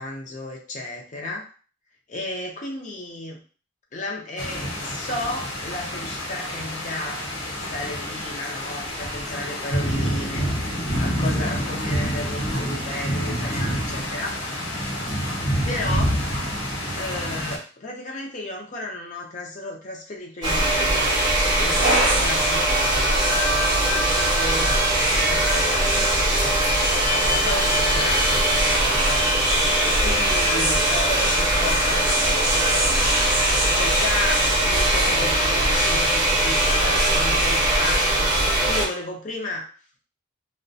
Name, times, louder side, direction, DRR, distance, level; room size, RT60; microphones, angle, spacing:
voice 1, 0.0-1.5 2.1-3.4 3.9-7.2 7.7-10.5 11.0-14.4 15.6-16.2 17.0-21.0 21.5-24.8 25.2-26.4 27.3-29.3 29.8-33.1 33.7-38.4 38.6-39.7, left 2 dB, 35° left, 0 dB, 0.5 m, -33 dB
sound 1, 4.4-17.6, equal, 75° left, 0.9 m, -27 dB
sound 2, 20.4-38.8, right 1 dB, 20° right, 0.6 m, -20 dB
2.2 x 2.1 x 2.6 m, 0.39 s
head